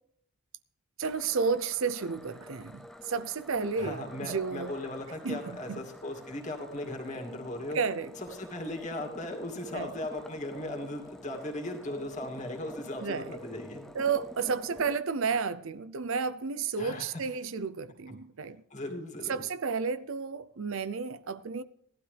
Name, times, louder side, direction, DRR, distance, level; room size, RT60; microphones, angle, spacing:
sound 1, 1.0-15.0, equal, ahead, 0.4 m, -48 dB
voice 1, 1.0-4.7 5.2-5.4 5.7-5.8 7.7-8.1 9.7-9.9 13.0-13.4 13.9-18.6 19.3-21.6, right 5 dB, 65° right, 0.6 m, -32 dB
voice 2, 3.8-7.8 8.2-13.9 16.8-17.2 18.7-19.4, left 1 dB, 30° left, 2.5 m, -38 dB
17.5 x 12.0 x 3.4 m
head